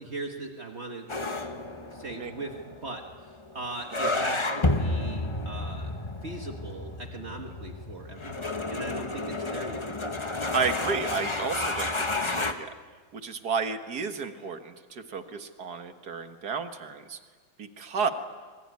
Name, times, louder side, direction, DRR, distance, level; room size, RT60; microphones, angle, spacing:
voice 1, 0.0-1.4 1.7-9.9, right 2 dB, 45° right, 3 dB, 1.9 m, -40 dB
sound 1, 1.1-12.5, left 2 dB, 20° left, 1.1 m, -31 dB
voice 2, 10.5-12.7 13.1-17.2 17.6-18.1, right 5 dB, 85° right, 7 dB, 2.0 m, -32 dB
26.0 x 22.0 x 9.5 m, 1.5 s
omnidirectional pair, 1.6 m